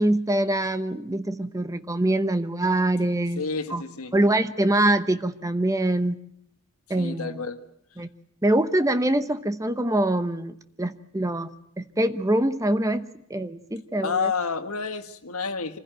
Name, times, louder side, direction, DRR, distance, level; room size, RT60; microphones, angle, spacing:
voice 1, 0.0-3.4 3.7-3.8 4.1-6.2 6.9-7.4 8.0-8.1 8.4-11.5 11.8-14.3, right 1 dB, 15° right, 11 dB, 0.9 m, -24 dB
voice 2, 3.4-4.1 7.0-7.6 14.0-15.8, left 5 dB, 80° left, 8 dB, 1.6 m, -29 dB
25.5 x 15.5 x 9.0 m, 0.73 s
head